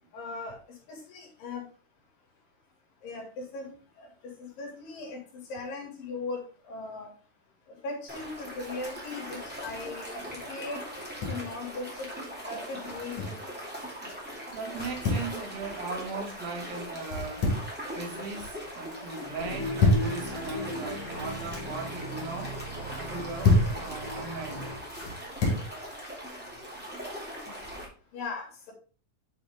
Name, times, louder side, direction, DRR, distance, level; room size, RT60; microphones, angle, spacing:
voice 1, 0.1-0.6 0.9-1.6 3.0-7.1 7.7-10.8 11.3-12.1 12.5-13.2 28.1-28.7, left 3 dB, 80° left, 4.1 m, -39 dB
sound 1, 8.1-27.8, equal, 5° right, 1.6 m, -40 dB
sound 2, 10.9-11.5 12.8-13.4 14.7-15.3 17.0-17.8 18.1-18.6 19.5-20.1 21.2-21.7 23.0-23.8 24.9-25.7, left 2 dB, 50° left, 2.9 m, -28 dB
voice 2, 14.5-17.5 18.0-22.6 23.0-24.7, right 3 dB, 90° right, 3.7 m, -38 dB
sound 3, 19.4-24.7, equal, 45° right, 3.8 m, -38 dB
9.3 x 4.9 x 3.6 m
omnidirectional pair, 4.0 m